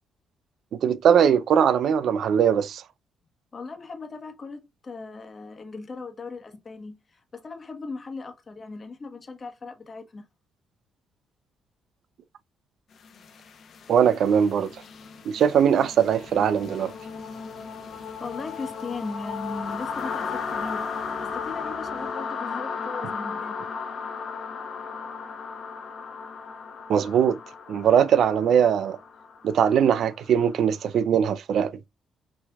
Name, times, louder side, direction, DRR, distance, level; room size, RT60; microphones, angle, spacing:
voice 1, 0.8-2.8 13.9-14.7 15.3-16.9 26.9-27.4 27.7-29.0 29.4-31.7, right 8 dB, 65° right, 0.5 m, -20 dB
voice 2, 3.5-10.2 18.2-20.9 21.2-23.6, left 3 dB, 35° left, 1.2 m, -38 dB
sound 1, 13.0-30.8, left 5 dB, 60° left, 1.0 m, -36 dB
6.0 x 3.2 x 2.3 m
cardioid pair, 90°, 0 cm